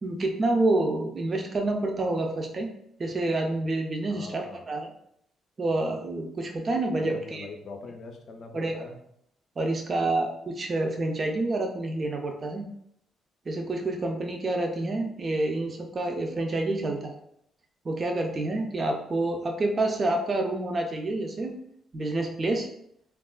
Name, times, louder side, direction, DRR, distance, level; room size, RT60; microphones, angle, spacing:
voice 1, 0.0-2.7 3.0-4.9 5.6-7.5 8.5-8.9 9.6-12.7 13.5-17.1 17.8-21.5 21.9-22.7, right 2 dB, 35° right, 3 dB, 0.4 m, -28 dB
voice 2, 4.1-4.6 7.0-9.0, left 3 dB, 60° left, 4 dB, 0.5 m, -42 dB
3.4 x 2.3 x 2.2 m, 0.72 s
cardioid pair, 90°, 0 cm